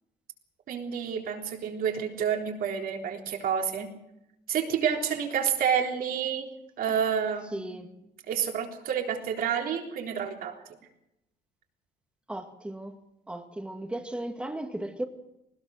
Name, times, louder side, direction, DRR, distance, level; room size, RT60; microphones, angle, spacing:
voice 1, 0.7-3.9 4.5-6.5 6.8-7.8 8.3-10.6, right 7 dB, 65° right, 3.7 m, -29 dB
voice 2, 7.5-7.9 12.3-13.0 13.3-15.0, right 1 dB, 5° right, 2.0 m, -36 dB
21.0 x 19.5 x 6.5 m
cardioid pair, 140°, 16 cm